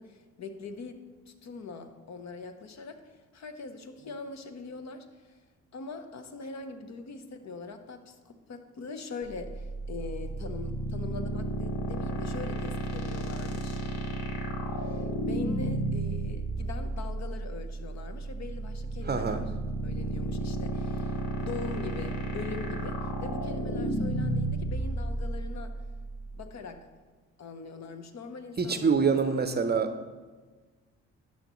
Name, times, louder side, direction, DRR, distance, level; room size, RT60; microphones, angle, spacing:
voice 1, 0.0-5.4 5.7-13.8 14.7-19.4 19.8-25.8 26.3-26.9 27.4-29.2, left 4 dB, 50° left, 8 dB, 0.8 m, -42 dB
sound 1, 9.2-26.4, right 1 dB, 70° left, 1.2 m, -32 dB
voice 2, 19.0-19.4 28.6-30.0, right 5 dB, 30° right, 9 dB, 0.6 m, -26 dB
11.5 x 5.7 x 3.0 m, 1.3 s
hypercardioid pair, 50°, 35 cm